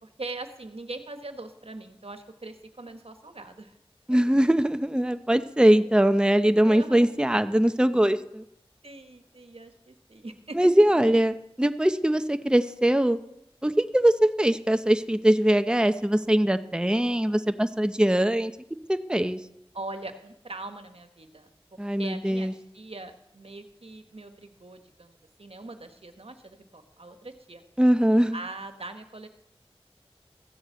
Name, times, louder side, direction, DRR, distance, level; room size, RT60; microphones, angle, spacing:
voice 1, 0.0-3.8 4.1-4.3 6.6-7.1 8.8-10.6 19.7-22.5 22.7-27.6 28.3-29.3, right 2 dB, 75° right, 7 dB, 1.3 m, -41 dB
voice 2, 4.1-8.5 10.6-13.2 13.6-18.5 18.9-19.4 21.8-22.5 27.8-28.4, right 1 dB, 10° right, 10 dB, 0.7 m, -22 dB
14.5 x 7.2 x 8.2 m, 0.79 s
wide cardioid pair, 45°, 10 cm